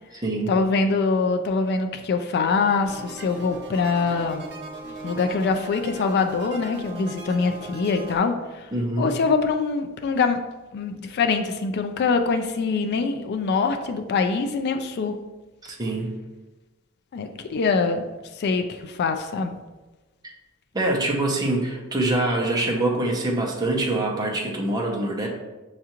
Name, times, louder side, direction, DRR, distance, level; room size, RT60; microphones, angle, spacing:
voice 1, 0.5-4.4 5.0-8.7 9.0-10.4 10.7-15.2 17.1-18.0 18.4-19.6, left 4 dB, 50° left, 7 dB, 0.3 m, -24 dB
sound 1, 2.8-8.2, right 2 dB, 55° right, 0.8 m, -39 dB
voice 2, 8.7-9.1 15.6-16.1 20.2-20.3 20.7-25.3, right 2 dB, 20° right, -1 dB, 0.7 m, -24 dB
6.5 x 2.4 x 2.9 m, 1.1 s
head